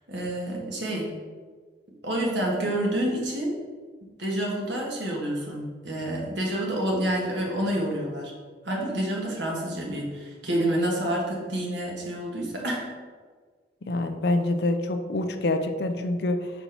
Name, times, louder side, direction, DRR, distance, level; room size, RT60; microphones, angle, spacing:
voice 1, 0.1-1.2 2.0-3.6 4.2-8.3 8.6-12.9, right 1 dB, 75° right, -2 dB, 1.4 m, -28 dB
voice 2, 13.9-16.5, left 2 dB, 60° left, 7 dB, 0.5 m, -26 dB
4.5 x 4.0 x 5.7 m, 1.5 s
head